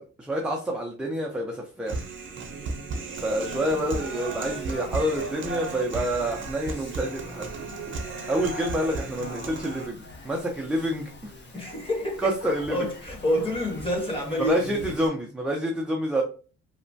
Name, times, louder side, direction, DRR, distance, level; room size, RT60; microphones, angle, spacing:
voice 1, 0.0-2.0 3.2-7.5 8.3-11.4 12.2-12.8 14.5-16.2, equal, 5° right, 0.4 m, -28 dB
Human voice, 1.9-9.9, right 3 dB, 40° right, 0.7 m, -34 dB
Speech, 3.1-15.1, left 2 dB, 35° left, 0.7 m, -45 dB
voice 2, 11.5-12.3 12.7-14.9, left 1 dB, 20° left, 1.3 m, -28 dB
3.0 x 2.1 x 2.6 m
cardioid pair, 90°, 30 cm